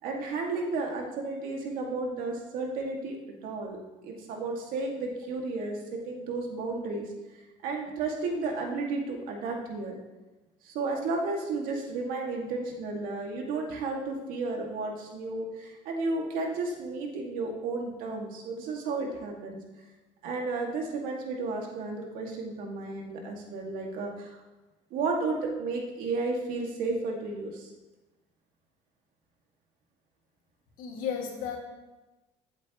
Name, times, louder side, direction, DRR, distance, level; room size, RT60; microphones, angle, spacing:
voice 1, 0.0-3.2 3.4-3.8 4.0-7.1 7.6-9.9 10.6-19.6 20.2-24.4 24.9-27.7, right 3 dB, 80° right, 1 dB, 2.0 m, -33 dB
voice 2, 30.8-31.6, left 7 dB, 75° left, 1 dB, 2.0 m, -33 dB
15.0 x 8.1 x 3.0 m, 1.1 s
cardioid pair, 110°, 14 cm